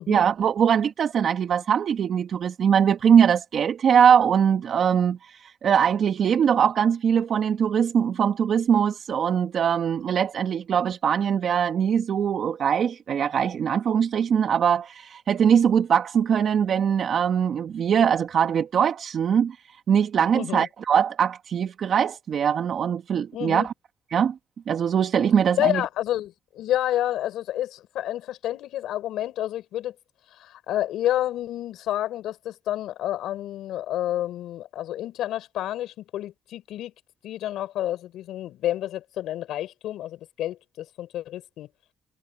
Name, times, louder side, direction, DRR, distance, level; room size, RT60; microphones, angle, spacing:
voice 1, 0.1-19.6 19.9-23.7 24.1-24.3 24.7-25.8, right 8 dB, 60° right, 2.2 m, -22 dB
voice 2, 20.3-20.7 23.3-23.7 25.5-29.9 30.3-36.9 37.2-41.7, left 13 dB, 85° left, 5.8 m, -29 dB
cardioid pair, 85°, 0 cm